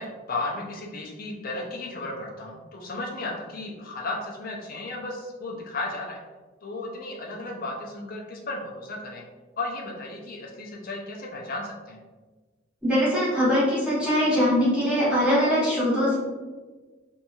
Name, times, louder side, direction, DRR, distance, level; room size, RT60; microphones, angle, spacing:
voice 1, 0.0-6.2 6.6-9.3 9.6-12.0, left 2 dB, 45° left, 0 dB, 0.5 m, -34 dB
voice 2, 12.8-16.2, equal, 5° right, -9 dB, 1.1 m, -22 dB
2.8 x 2.7 x 2.3 m, 1.3 s
head